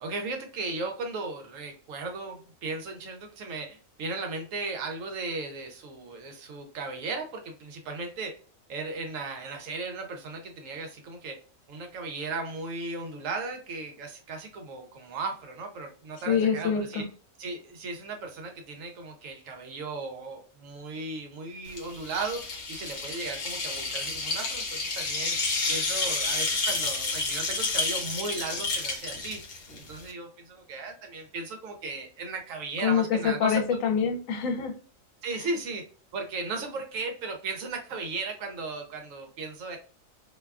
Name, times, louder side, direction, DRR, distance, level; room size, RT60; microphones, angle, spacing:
voice 1, 0.0-8.4 8.7-11.4 11.7-17.0 17.4-25.4 25.7-29.4 29.8-33.6 35.2-35.9 36.1-39.8, right 3 dB, 75° right, 5 dB, 1.0 m, -36 dB
voice 2, 16.3-17.0 32.8-34.7, left 7 dB, 80° left, 5 dB, 1.0 m, -25 dB
sound 1, 21.7-30.1, left 3 dB, 55° left, 0.9 m, -30 dB
2.6 x 2.2 x 2.2 m, 0.38 s
omnidirectional pair, 1.4 m